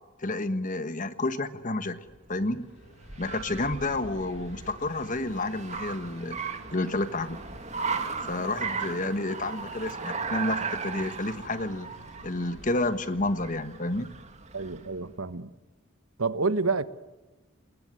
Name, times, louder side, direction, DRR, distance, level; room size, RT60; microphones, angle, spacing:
voice 1, 0.2-2.0 2.3-2.6 3.2-6.4 6.7-7.4 8.2-11.9 12.2-14.1, left 2 dB, 40° left, 11 dB, 1.5 m, -30 dB
Car, 2.1-15.0, right 5 dB, 35° right, 2.4 m, -37 dB
sound 1, 2.4-13.3, equal, 65° left, 6.0 m, -52 dB
voice 2, 14.5-15.5 16.2-16.8, right 4 dB, 80° right, 13 dB, 1.3 m, -28 dB
28.5 x 20.0 x 9.8 m, 1.1 s
head